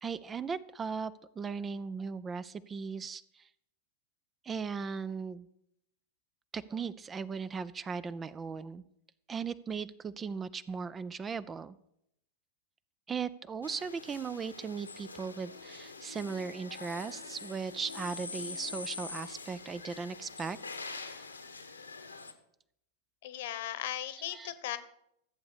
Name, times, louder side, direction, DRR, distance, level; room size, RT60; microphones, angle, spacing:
voice 1, 0.0-3.5 4.4-5.5 6.5-8.8 9.3-11.8 13.1-20.6 20.9-21.3 24.3-24.5, right 5 dB, 20° right, 17 dB, 0.5 m, -38 dB
sound 1, 13.6-22.3, left 4 dB, 80° left, 1.3 m, -44 dB
voice 2, 23.2-24.8, left 12 dB, 55° left, 14 dB, 1.1 m, -37 dB
14.5 x 8.0 x 6.7 m, 0.76 s
figure-of-eight pair, 90°, 0 cm